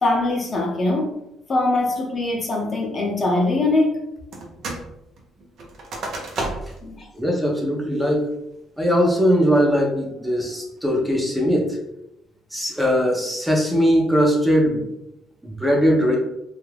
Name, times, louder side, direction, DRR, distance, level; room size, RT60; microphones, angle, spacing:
voice 1, 0.0-1.1 1.5-4.0 6.8-7.1, left 2 dB, 35° left, 0 dB, 0.7 m, -22 dB
sound 1, 4.3-4.9 5.2-6.9 7.3-7.4 7.9-8.3 8.8-9.2, right 2 dB, 60° right, 0.6 m, -32 dB
voice 2, 7.1-8.3 8.8-11.8 12.5-14.9 15.4-16.2, equal, 5° right, -1 dB, 0.7 m, -20 dB
2.3 x 2.0 x 3.3 m, 0.86 s
supercardioid pair, 80°, 0 cm